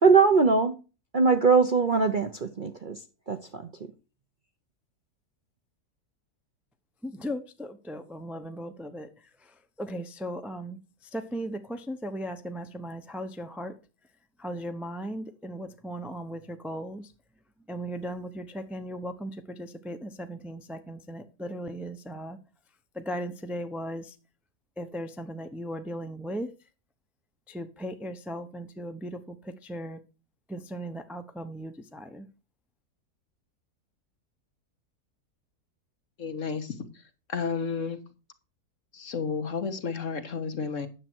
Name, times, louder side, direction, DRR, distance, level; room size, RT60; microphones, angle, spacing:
voice 1, 0.0-0.7 1.1-3.0 3.3-3.7, right 4 dB, 45° right, 0.7 m, -21 dB
voice 2, 7.0-9.1 9.4-13.7 14.4-17.1 17.7-22.4 22.9-24.2 24.8-26.5 27.5-30.0 30.5-32.3, equal, ahead, 0.5 m, -37 dB
voice 3, 36.2-36.7 37.3-38.0 38.9-40.9, left 5 dB, 55° left, 1.5 m, -31 dB
9.8 x 7.4 x 4.5 m
omnidirectional pair, 1.7 m